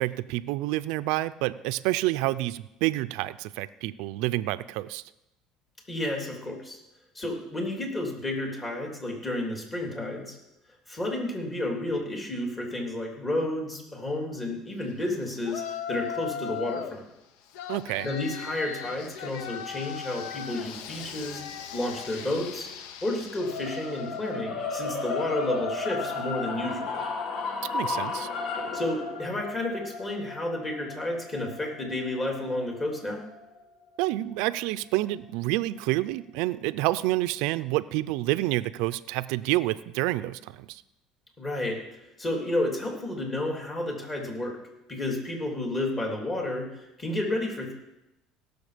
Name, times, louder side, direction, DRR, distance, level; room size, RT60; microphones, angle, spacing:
voice 1, 0.0-5.0 17.7-18.1 27.7-28.3 34.0-40.8, right 17 dB, 75° right, 14 dB, 0.4 m, -28 dB
voice 2, 5.9-6.8 7.1-10.4 10.9-17.0 18.0-21.4 21.7-22.7 23.0-27.0 28.7-33.2 41.4-44.6 44.9-47.7, left 1 dB, 25° left, 0 dB, 3.2 m, -31 dB
Yell, 15.4-17.0 17.5-24.3, left 9 dB, 80° left, 0.8 m, -38 dB
sound 1, 23.4-33.6, left 4 dB, 55° left, 1.6 m, -34 dB
17.5 x 7.0 x 5.1 m, 0.90 s
supercardioid pair, 115°, 0 cm